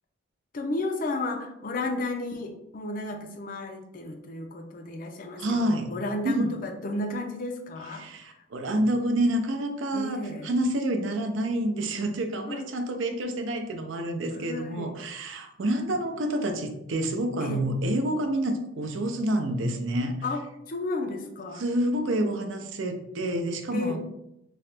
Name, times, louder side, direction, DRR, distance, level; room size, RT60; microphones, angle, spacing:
voice 1, 0.5-8.4 9.9-10.5 12.5-12.7 14.3-14.9 17.4-17.6 20.2-21.6 23.7-24.0, left 2 dB, 40° left, 4 dB, 0.4 m, -33 dB
voice 2, 5.4-5.9 6.2-6.5 8.0-20.1 21.6-24.0, right 1 dB, 65° right, 5 dB, 0.5 m, -28 dB
3.0 x 2.8 x 3.3 m, 0.85 s
head